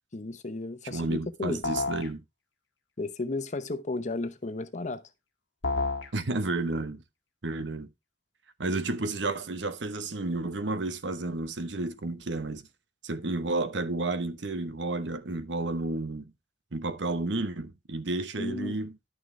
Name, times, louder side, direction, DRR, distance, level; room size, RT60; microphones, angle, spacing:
voice 1, 0.1-1.6 3.0-5.0 18.4-18.8, left 2 dB, 40° left, 0.8 m, -34 dB
voice 2, 0.9-2.2 6.1-7.0 7.4-7.9 8.6-12.7 13.0-16.3 16.7-18.9, right 2 dB, 80° right, 1.0 m, -31 dB
sound 1, 1.6-2.1 5.6-6.1, left 3 dB, 90° left, 1.7 m, -29 dB
11.0 x 6.4 x 3.2 m
head